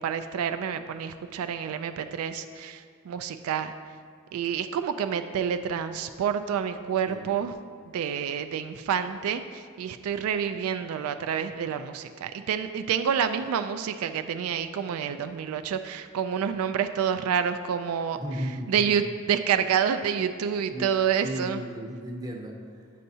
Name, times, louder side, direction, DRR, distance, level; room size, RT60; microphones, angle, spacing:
voice 1, 0.0-3.7 4.3-7.5 7.9-18.2 18.7-21.6, right 8 dB, 80° right, 11 dB, 0.3 m, -28 dB
voice 2, 18.2-18.9 20.7-20.9 21.2-22.9, equal, 20° right, 0 dB, 0.6 m, -35 dB
9.2 x 5.4 x 2.7 m, 2.1 s
head